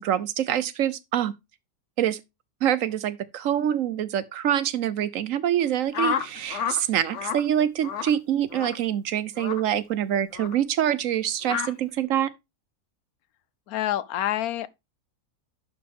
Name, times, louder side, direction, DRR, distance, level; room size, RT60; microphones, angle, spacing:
voice 1, 0.0-1.3 2.0-2.2 2.6-12.3, right 10 dB, 70° right, 1.0 m, -25 dB
sound 1, 5.9-6.8 7.1-7.4 7.8-8.1 8.5-8.8 9.4-9.6 10.3-10.6 11.4-11.7, left 7 dB, 55° left, 1.1 m, -29 dB
voice 2, 13.7-14.7, left 13 dB, 80° left, 1.1 m, -27 dB
11.5 x 5.3 x 3.5 m
omnidirectional pair, 1.6 m